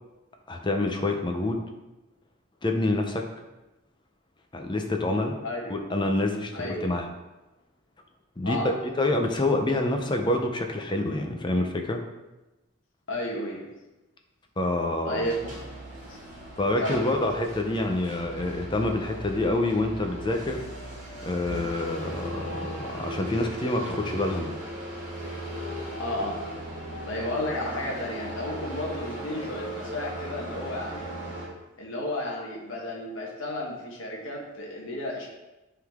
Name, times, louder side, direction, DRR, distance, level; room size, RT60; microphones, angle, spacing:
voice 1, 0.5-1.6 2.6-3.2 4.5-5.4 5.7-7.0 8.4-12.0 14.6-15.2 16.6-20.6 21.2-24.5, left 2 dB, 20° left, 4 dB, 0.6 m, -27 dB
voice 2, 5.4-5.8 6.5-6.9 8.4-8.7 13.1-13.7 15.0-15.5 16.1-16.2 16.8-17.0 26.0-26.4 27.0-31.1 31.8-35.3, left 1 dB, 65° left, -2 dB, 1.1 m, -32 dB
sound 1, 15.2-31.5, right 1 dB, 40° right, 1.9 m, -37 dB
8.9 x 3.8 x 3.6 m, 1.0 s
head